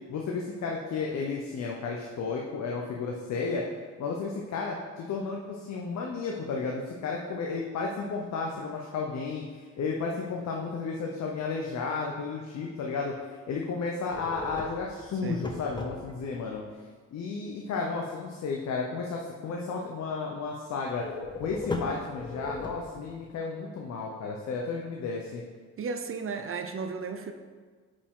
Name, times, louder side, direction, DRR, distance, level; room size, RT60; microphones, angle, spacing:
voice 1, 0.1-3.7 4.0-16.6 17.1-21.1 21.4-25.4, left 4 dB, 65° left, -1 dB, 0.9 m, -33 dB
sound 1, 14.1-16.4 20.9-23.2, left 3 dB, 15° left, 0.8 m, -37 dB
voice 2, 25.8-27.3, right 5 dB, 45° right, 6 dB, 0.6 m, -34 dB
8.3 x 5.2 x 3.8 m, 1.5 s
cardioid pair, 90°, 30 cm